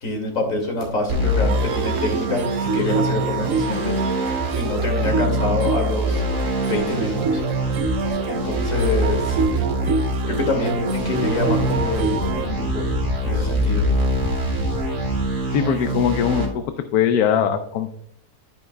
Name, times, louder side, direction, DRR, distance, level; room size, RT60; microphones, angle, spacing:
voice 1, 0.0-6.2 6.7-7.8 8.3-9.7 10.3-12.8 13.2-13.8, left 2 dB, 60° left, 1 dB, 2.6 m, -26 dB
sound 1, 0.8-0.9 1.4-1.7 2.0-3.5 4.1-4.2 5.9-15.3, left 2 dB, 20° left, 3.7 m, -32 dB
sound 2, 1.1-16.5, right 1 dB, 85° right, 2.7 m, -24 dB
sound 3, 1.5-12.5, right 5 dB, 65° right, 0.9 m, -28 dB
voice 2, 15.5-16.6 16.9-17.9, left 8 dB, 80° left, 8 dB, 1.1 m, -20 dB
10.5 x 10.5 x 2.2 m, 0.71 s
omnidirectional pair, 1.6 m